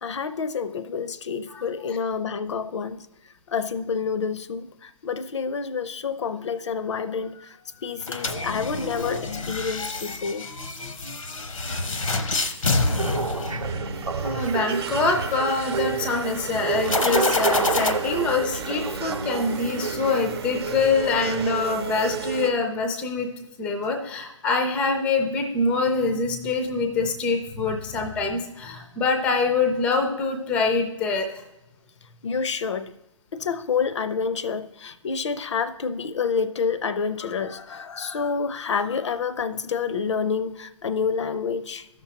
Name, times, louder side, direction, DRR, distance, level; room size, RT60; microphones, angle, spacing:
voice 1, 0.0-3.1 3.5-10.5 32.2-32.9 33.3-41.9, left 5 dB, 60° left, 0.5 m, -28 dB
sound 1, 8.0-14.2 16.8-17.9, left 3 dB, 85° left, 0.9 m, -27 dB
sound 2, 13.0-20.2, right 5 dB, 90° right, 0.7 m, -30 dB
sound 3, 13.6-22.5, right 6 dB, 50° right, 0.8 m, -33 dB
voice 2, 14.2-23.3 23.6-31.4, left 4 dB, 5° left, 0.4 m, -25 dB
14.0 x 6.0 x 2.9 m
figure-of-eight pair, 145°, 17 cm